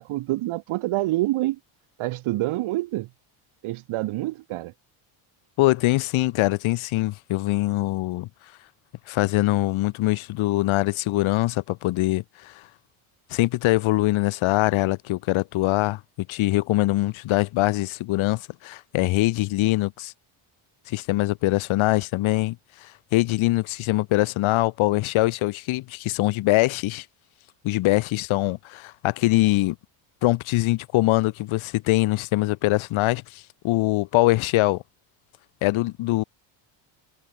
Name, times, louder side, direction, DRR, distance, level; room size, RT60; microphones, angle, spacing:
voice 1, 0.0-1.6 2.0-3.1 3.6-4.7, right 18 dB, 75° right, 6.8 m, -27 dB
voice 2, 5.6-8.3 9.1-12.5 13.3-20.1 20.9-22.6 22.8-27.0 27.6-29.8 30.2-34.8 35.6-36.2, left 18 dB, 70° left, 2.2 m, -23 dB
cardioid pair, 155°, 50 cm